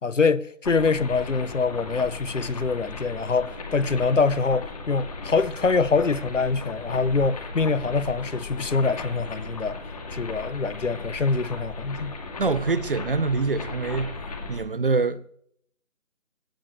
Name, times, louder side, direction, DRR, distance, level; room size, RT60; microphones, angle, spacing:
voice 1, 0.0-9.8 10.1-12.1, left 4 dB, 70° left, 1.0 m, -24 dB
sound 1, 0.6-14.6, left 3 dB, 30° left, 2.6 m, -36 dB
voice 2, 12.4-14.2 14.5-15.3, right 4 dB, 45° right, 0.8 m, -25 dB
19.5 x 17.0 x 3.2 m
figure-of-eight pair, 155°, 39 cm